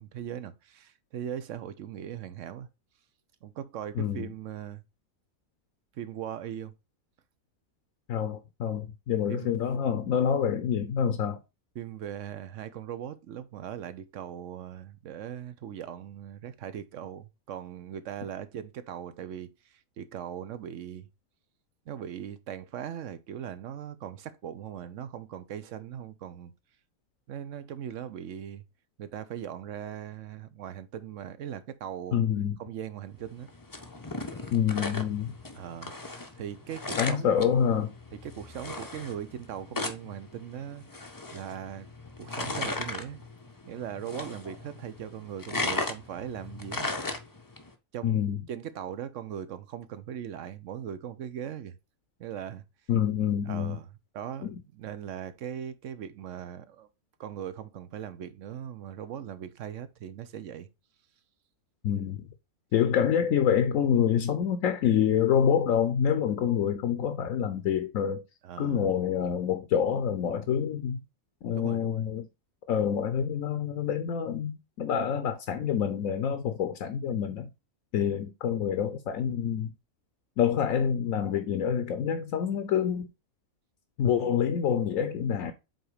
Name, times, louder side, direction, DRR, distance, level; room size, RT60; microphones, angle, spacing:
voice 1, 0.0-2.7 3.4-4.8 5.9-6.7 9.3-9.5 11.8-21.1 21.9-26.5 27.3-28.6 29.0-32.2 32.6-33.5 35.5-35.9 36.3-37.4 38.1-40.8 41.3-41.9 42.2-43.2 43.7-46.9 47.9-48.2 48.5-51.8 52.2-52.6 53.5-53.9 54.1-56.9 57.2-60.7 68.4-68.8 71.5-72.1 84.2-84.4, right 9 dB, 65° right, 1.0 m, -39 dB
voice 2, 3.9-4.3 8.1-11.4 32.1-32.6 34.5-35.3 37.0-37.9 48.0-48.4 52.9-53.8 54.4-54.6 61.8-62.3 62.7-68.2 68.6-71.0 71.4-72.3 72.7-77.5 77.9-79.7 80.4-83.1 84.0-85.5, left 8 dB, 70° left, 1.1 m, -27 dB
sound 1, 33.2-47.7, left 2 dB, 20° left, 0.5 m, -37 dB
7.9 x 3.0 x 4.8 m
omnidirectional pair, 1.5 m